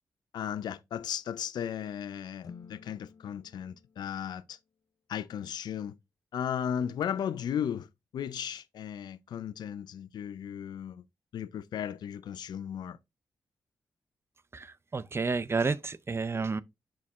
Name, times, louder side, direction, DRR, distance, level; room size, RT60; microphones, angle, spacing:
voice 1, 0.3-4.6 5.1-6.0 6.3-7.9 8.1-11.0 11.3-13.0, left 9 dB, 80° left, 0.5 m, -35 dB
sound 1, 2.4-4.8, left 6 dB, 60° left, 0.8 m, -52 dB
voice 2, 14.5-16.6, right 4 dB, 35° right, 0.6 m, -31 dB
6.4 x 4.3 x 3.6 m
cardioid pair, 60°, 7 cm